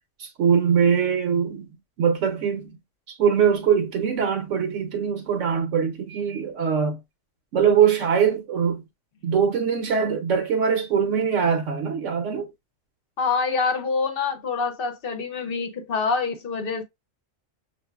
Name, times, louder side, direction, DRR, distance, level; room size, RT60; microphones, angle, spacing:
voice 1, 0.2-2.8 3.1-7.0 7.5-8.8 9.2-12.5, right 7 dB, 75° right, 1.0 m, -22 dB
voice 2, 13.2-16.8, left 4 dB, 55° left, 0.8 m, -26 dB
6.4 x 2.6 x 2.3 m
omnidirectional pair, 1.3 m